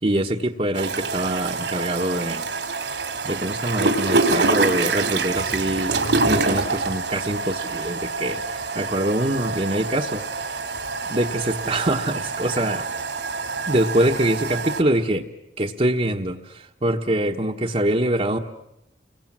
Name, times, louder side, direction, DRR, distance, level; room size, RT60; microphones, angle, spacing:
voice 1, 0.0-2.5 3.2-10.5 11.1-12.9 13.7-15.3 15.6-18.4, right 1 dB, 35° right, 0 dB, 1.2 m, -24 dB
sound 1, 0.7-14.8, right 3 dB, 85° right, 2.9 m, -26 dB
30.0 x 23.0 x 7.5 m, 0.84 s
head